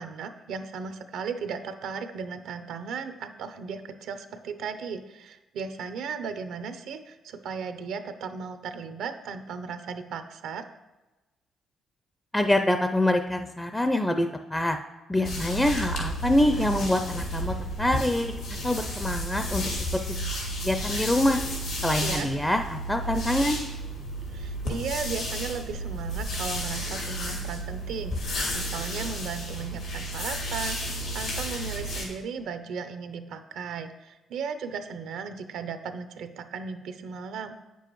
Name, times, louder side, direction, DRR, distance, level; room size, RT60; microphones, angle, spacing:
voice 1, 0.0-10.7 22.0-22.3 24.3-37.7, right 5 dB, 80° right, 9 dB, 0.6 m, -36 dB
voice 2, 12.3-14.8 15.1-19.6 20.1-20.2 20.6-21.4 21.8-23.6, left 1 dB, 10° left, 6 dB, 0.4 m, -25 dB
sound 1, 15.2-32.1, equal, 85° left, 2.5 m, -32 dB
8.8 x 6.9 x 3.0 m, 1.1 s
cardioid pair, 90°, 0 cm